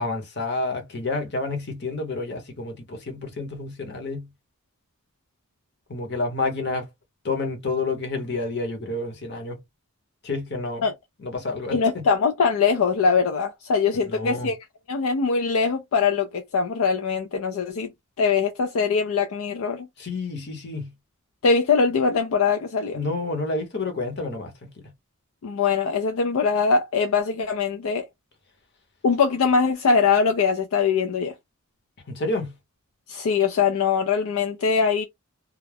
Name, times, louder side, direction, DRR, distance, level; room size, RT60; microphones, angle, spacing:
voice 1, 0.0-4.3 5.9-6.9 7.2-9.6 10.2-10.8 11.2-11.8 14.0-14.5 20.0-20.9 22.9-24.5 32.1-32.5, left 3 dB, 50° left, 0.8 m, -29 dB
voice 2, 11.7-14.6 14.9-17.9 18.2-19.9 21.4-23.0 25.4-28.1 29.0-31.3 33.1-35.0, left 5 dB, 70° left, 0.4 m, -22 dB
2.4 x 2.0 x 3.3 m
head